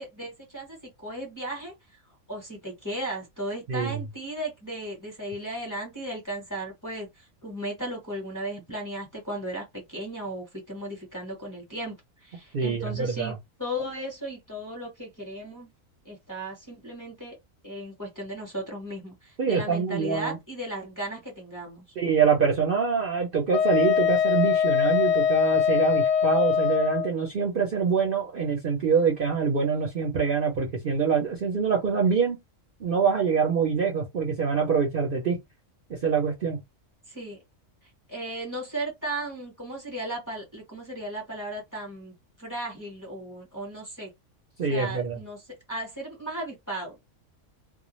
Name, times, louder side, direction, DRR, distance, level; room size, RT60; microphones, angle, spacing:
voice 1, 0.0-2.0 2.3-13.3 13.6-15.7 16.0-17.4 17.6-21.8 37.1-37.4 38.1-44.1 44.7-45.4 45.7-47.0, right 1 dB, 15° left, 0.8 m, -36 dB
voice 2, 3.7-4.0 12.5-13.3 19.4-20.4 22.0-32.4 32.8-35.4 35.9-36.6 44.6-45.2, right 6 dB, 50° right, 0.7 m, -25 dB
Wind instrument woodwind instrument, 23.5-27.1, left 7 dB, 65° left, 0.8 m, -22 dB
2.4 x 2.1 x 3.0 m
omnidirectional pair, 1.4 m